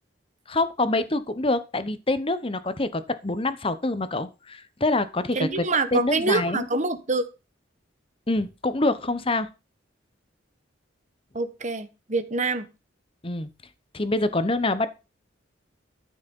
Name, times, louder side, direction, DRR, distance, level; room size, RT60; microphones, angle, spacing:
voice 1, 0.5-5.6 5.9-6.7 8.3-9.5 13.2-13.5 13.9-14.9, left 2 dB, 30° left, 1.0 m, -25 dB
voice 2, 5.3-7.2 11.3-12.6, right 3 dB, 40° right, 1.2 m, -26 dB
13.0 x 6.4 x 5.4 m
head